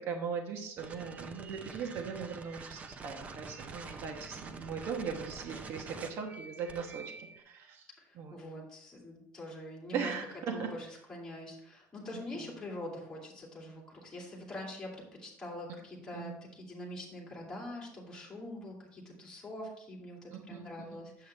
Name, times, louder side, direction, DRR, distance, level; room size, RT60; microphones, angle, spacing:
voice 1, 0.0-7.9 8.1-8.4 9.9-10.7 12.1-12.5 16.1-16.4 20.3-21.0, right 6 dB, 50° right, 2 dB, 1.1 m, -39 dB
sound 1, 0.8-7.4, right 4 dB, 25° right, 0.6 m, -47 dB
voice 2, 8.0-10.1 10.5-21.3, left 1 dB, 10° left, -3 dB, 2.5 m, -44 dB
8.5 x 7.9 x 3.2 m, 0.73 s
cardioid pair, 165°, 6 cm